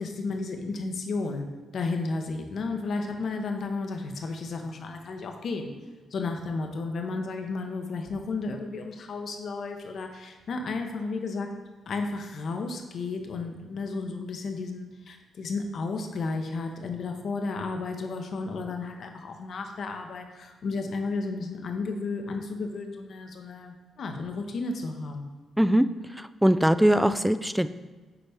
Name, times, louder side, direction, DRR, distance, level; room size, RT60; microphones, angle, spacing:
voice 1, 0.0-5.7 6.1-11.5 11.9-25.3, left 3 dB, 60° left, 4 dB, 0.8 m, -33 dB
voice 2, 26.4-27.7, equal, 5° right, 13 dB, 0.3 m, -21 dB
6.9 x 4.2 x 3.5 m, 1.3 s
hypercardioid pair, 45°, 0 cm